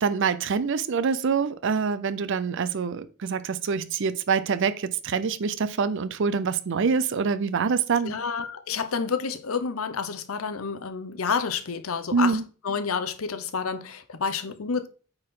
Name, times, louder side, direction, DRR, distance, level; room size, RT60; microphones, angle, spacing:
voice 1, 0.0-8.1 12.1-12.4, right 5 dB, 60° right, 0.5 m, -25 dB
voice 2, 8.0-14.9, left 5 dB, 80° left, 0.8 m, -29 dB
8.8 x 4.3 x 3.7 m
head